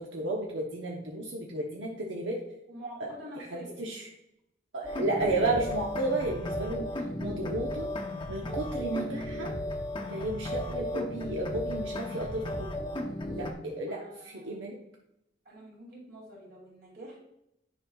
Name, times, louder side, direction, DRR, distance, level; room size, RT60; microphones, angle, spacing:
voice 1, 0.0-2.4 3.0-3.1 3.5-4.0 4.7-6.9 7.2-7.9 8.3-9.5 10.1-12.7 13.4-14.7, right 2 dB, 90° right, -1 dB, 0.9 m, -32 dB
voice 2, 2.7-3.8 13.2-14.6 15.4-17.2, equal, 60° right, -3 dB, 2.7 m, -47 dB
sound 1, 4.8-13.5, left 1 dB, 25° left, 0.7 m, -35 dB
9.7 x 5.5 x 2.3 m, 0.82 s
head